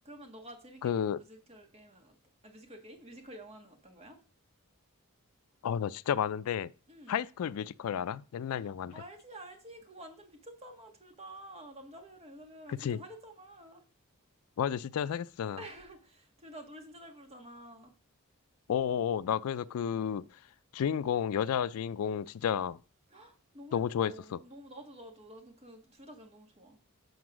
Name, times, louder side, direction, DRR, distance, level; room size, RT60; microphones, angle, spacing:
voice 1, 0.0-2.2 2.4-4.2 6.9-7.2 8.5-13.8 15.6-17.9 23.1-26.8, right 1 dB, 30° right, 1.6 m, -50 dB
voice 2, 0.8-1.2 5.6-6.7 7.1-8.9 12.7-13.0 14.6-15.6 18.7-20.2 20.7-22.8 23.7-24.1, left 8 dB, 75° left, 0.3 m, -31 dB
7.9 x 4.6 x 6.1 m
head